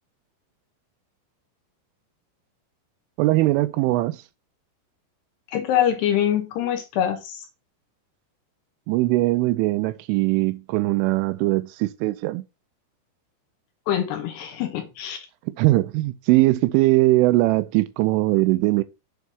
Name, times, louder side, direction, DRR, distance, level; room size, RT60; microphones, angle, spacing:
voice 1, 3.2-4.2 8.9-12.4 15.6-18.8, right 19 dB, 85° right, 3.0 m, -20 dB
voice 2, 5.5-7.5 13.9-15.2, left 10 dB, 70° left, 2.8 m, -24 dB
8.3 x 4.0 x 6.1 m
omnidirectional pair, 5.8 m